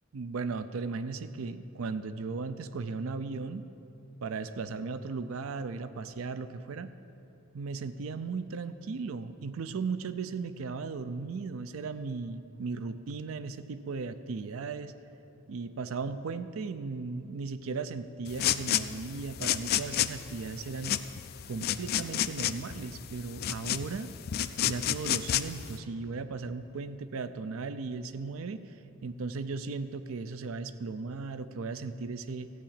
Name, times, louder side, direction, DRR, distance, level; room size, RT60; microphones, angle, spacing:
voice 1, 0.1-3.6 4.2-6.9 7.5-14.9 15.5-21.0 21.5-24.1 24.6-28.7 29.0-32.5, right 4 dB, 80° right, 12 dB, 0.5 m, -36 dB
sound 1, 18.3-25.8, left 11 dB, 50° left, 0.3 m, -31 dB
14.0 x 4.9 x 8.8 m, 2.8 s
head